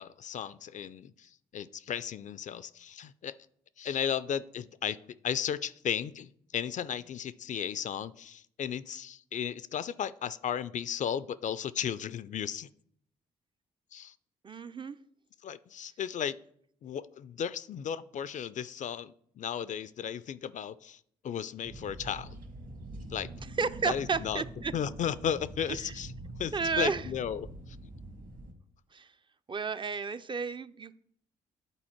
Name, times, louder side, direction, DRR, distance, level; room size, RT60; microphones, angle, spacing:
voice 1, 0.0-3.3 3.8-5.0 5.2-12.7 13.9-14.1 15.4-16.4 16.8-22.4 23.1-23.3 23.9-24.4 24.7-26.1 26.4-27.5 27.8-27.9, left 8 dB, 50° left, 17 dB, 0.4 m, -35 dB
voice 2, 14.4-15.0 23.6-24.7 25.7-25.9 26.5-27.1 28.9-29.1 29.5-30.9, right 5 dB, 30° right, 12 dB, 0.4 m, -32 dB
sound 1, 21.6-28.5, right 2 dB, 55° right, 1.6 m, -44 dB
9.8 x 4.2 x 4.4 m, 0.66 s
hypercardioid pair, 50°, 17 cm